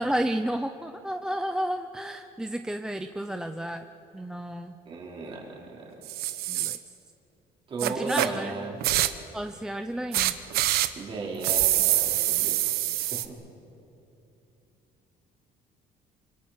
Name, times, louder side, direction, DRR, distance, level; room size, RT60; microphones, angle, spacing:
voice 1, 0.0-3.8 4.1-4.8 6.5-6.8 7.8-8.7 9.3-10.3, right 1 dB, 5° right, 7 dB, 0.5 m, -31 dB
voice 2, 4.8-5.9 7.7-8.8 11.0-13.3, right 3 dB, 35° right, -2 dB, 4.3 m, -36 dB
sound 1, 6.0-6.8 7.8-8.3 8.8-9.2 10.1-10.9 11.4-13.3, right 14 dB, 90° right, 1.1 m, -25 dB
27.5 x 25.5 x 5.9 m, 2.9 s
cardioid pair, 170°, 15 cm